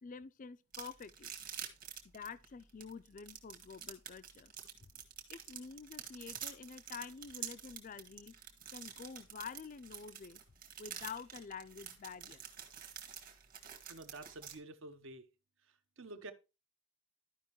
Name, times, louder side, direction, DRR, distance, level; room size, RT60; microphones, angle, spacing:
voice 1, 0.0-1.3 2.0-4.5 4.8-4.9 5.3-8.3 8.7-10.4 10.8-12.5, left 5 dB, 40° left, 0.4 m, -48 dB
sound 1, 0.7-14.5, right 9 dB, 40° right, 1.5 m, -47 dB
voice 2, 13.9-15.3 16.0-16.3, right 2 dB, 60° right, 0.9 m, -49 dB
13.0 x 5.3 x 3.0 m
head